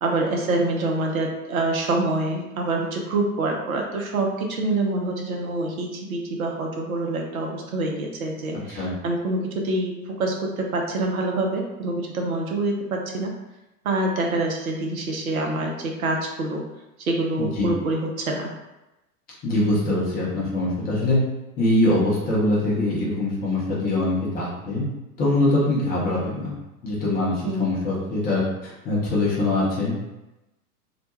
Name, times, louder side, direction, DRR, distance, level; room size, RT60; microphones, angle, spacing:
voice 1, 0.0-13.3 13.8-16.6 17.0-18.5 27.4-27.7, right 2 dB, 65° right, 1 dB, 0.6 m, -26 dB
voice 2, 19.4-21.2 21.6-24.9 25.2-26.6 26.8-30.0, left 2 dB, 20° left, -6 dB, 0.6 m, -23 dB
2.4 x 2.1 x 2.9 m, 0.98 s
figure-of-eight pair, 95°, 45 cm